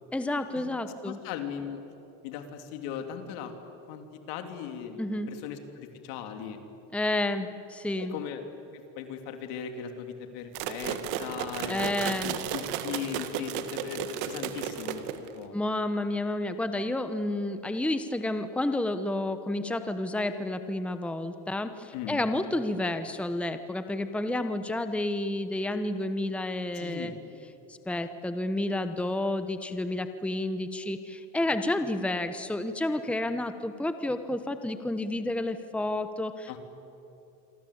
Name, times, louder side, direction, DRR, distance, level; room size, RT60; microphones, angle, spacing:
voice 1, 0.1-1.2 5.0-5.3 6.9-8.2 11.7-12.3 15.5-27.1 27.7-36.6, left 1 dB, 5° left, 9 dB, 1.1 m, -30 dB
voice 2, 1.0-1.8 2.2-3.5 3.9-5.0 5.3-6.6 8.1-8.5 8.7-15.5 21.9-22.3 26.7-27.1 36.5-36.6, left 8 dB, 75° left, 6 dB, 3.3 m, -38 dB
sound 1, 10.5-15.4, right 10 dB, 70° right, 2.0 m, -34 dB
27.5 x 23.5 x 8.6 m, 2.8 s
supercardioid pair, 115°, 36 cm